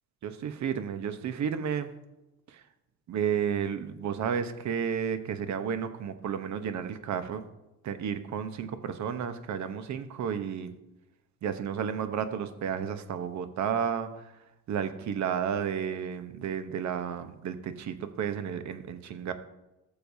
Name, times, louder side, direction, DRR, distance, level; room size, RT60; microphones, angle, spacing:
voice 1, 0.2-1.9 2.5-2.6 3.1-7.4 7.8-10.7 11.4-14.2 14.7-19.3, right 7 dB, 70° right, 10 dB, 0.9 m, -32 dB
17.5 x 6.8 x 2.7 m, 0.98 s
cardioid pair, 90°, 30 cm